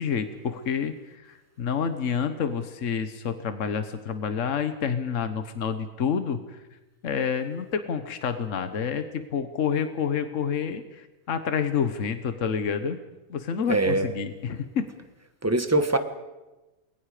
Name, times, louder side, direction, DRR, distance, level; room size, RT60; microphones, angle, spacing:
voice 1, 0.0-6.6 7.0-13.0 13.3-14.9, left 7 dB, 65° left, 9 dB, 1.5 m, -28 dB
voice 2, 13.7-14.1 15.4-16.0, right 2 dB, 10° right, 8 dB, 1.2 m, -22 dB
28.5 x 22.0 x 5.0 m, 1.1 s
omnidirectional pair, 1.4 m